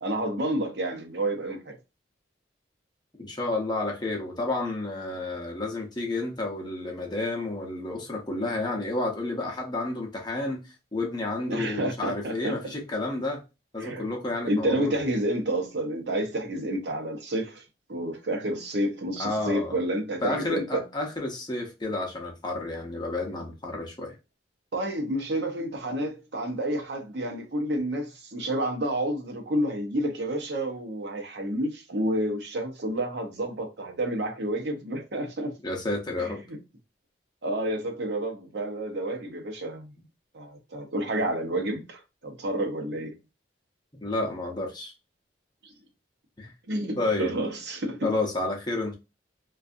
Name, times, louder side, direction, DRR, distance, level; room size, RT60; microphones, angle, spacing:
voice 1, 0.0-1.8 11.5-12.5 13.8-14.1 14.4-17.6 17.9-20.8 24.7-35.5 36.2-36.6 37.4-39.9 40.3-43.2 45.6-45.7 46.7-48.1, right 1 dB, 70° right, 0.7 m, -30 dB
voice 2, 3.2-10.6 10.9-13.4 13.7-15.0 19.2-19.8 20.2-24.1 35.6-36.4 44.0-44.9 46.4-46.5 47.0-47.3 48.0-48.9, left 2 dB, 25° left, 0.6 m, -30 dB
2.5 x 2.3 x 2.5 m
head